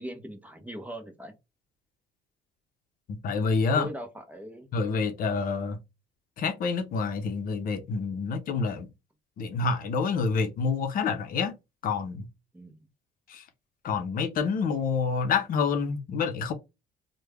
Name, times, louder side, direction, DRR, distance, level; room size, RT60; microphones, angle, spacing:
voice 1, 0.0-1.3 3.7-4.7 12.5-12.8, equal, 10° right, 0.7 m, -40 dB
voice 2, 3.2-3.9 4.7-5.8 6.4-8.9 9.4-11.5 11.8-12.3 13.3-13.4 13.8-16.5, left 5 dB, 55° left, 0.7 m, -27 dB
3.3 x 2.2 x 3.3 m
cardioid pair, 110°, 17 cm